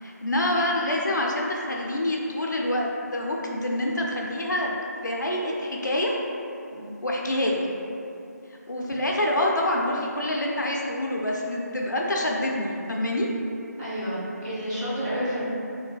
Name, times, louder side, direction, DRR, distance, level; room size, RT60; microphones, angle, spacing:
voice 1, 0.0-4.7 5.0-6.1 7.0-7.7 8.7-13.3, left 1 dB, 80° left, -2 dB, 0.4 m, -26 dB
voice 2, 13.8-15.5, equal, 5° right, -16 dB, 0.5 m, -30 dB
3.2 x 2.1 x 2.3 m, 2.7 s
figure-of-eight pair, 155°, 10 cm